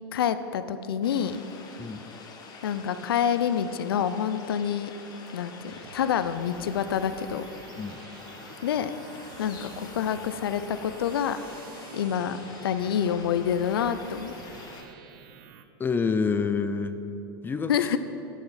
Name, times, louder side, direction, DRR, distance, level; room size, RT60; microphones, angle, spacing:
voice 1, 0.1-1.4 2.6-4.9 5.3-7.4 8.6-8.9 9.4-11.4 11.9-12.4 12.6-14.4 17.7-18.0, left 8 dB, 80° left, 12 dB, 0.5 m, -27 dB
sound 1, 1.0-14.8, left 4 dB, 35° left, 1.3 m, -46 dB
voice 2, 1.8-2.1 7.8-8.0 15.8-17.0 17.4-17.7, left 5 dB, 15° left, 10 dB, 0.4 m, -27 dB
sound 2, 5.7-15.7, right 8 dB, 70° right, 0.7 m, -49 dB
8.4 x 7.7 x 5.6 m, 2.8 s
hypercardioid pair, 110°, 12 cm